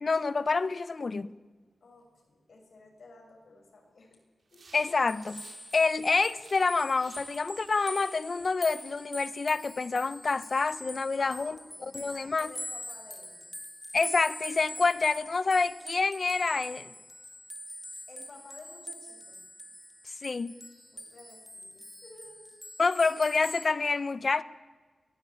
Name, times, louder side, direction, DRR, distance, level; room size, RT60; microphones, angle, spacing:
voice 1, 0.0-1.4 4.7-5.5 5.7-11.6 11.9-12.5 13.9-16.9 20.2-20.5 22.8-24.4, left 4 dB, 50° left, 0.9 m, -27 dB
voice 2, 1.8-4.2 4.5-4.7 11.2-13.5 18.1-19.4 20.9-22.5, left 2 dB, 75° left, 6.8 m, -53 dB
sound 1, 4.5-6.7 7.0-9.6, right 3 dB, 75° right, 4.5 m, -57 dB
sound 2, 4.9-23.7, left 1 dB, 10° left, 1.8 m, -44 dB
23.5 x 16.5 x 8.7 m
wide cardioid pair, 75°, 0 cm